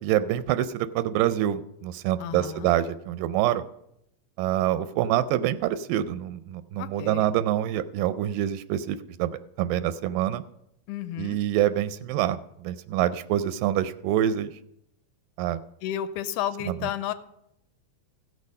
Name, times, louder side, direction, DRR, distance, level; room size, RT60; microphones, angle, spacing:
voice 1, 0.0-3.6 4.4-9.3 9.6-10.4 11.2-14.5 15.4-15.6, right 12 dB, 85° right, 12 dB, 2.2 m, -26 dB
voice 2, 2.2-2.7 6.8-7.3 10.9-11.4 15.8-17.1, left 10 dB, 80° left, 12 dB, 2.0 m, -32 dB
15.5 x 6.4 x 5.3 m, 0.79 s
omnidirectional pair, 3.8 m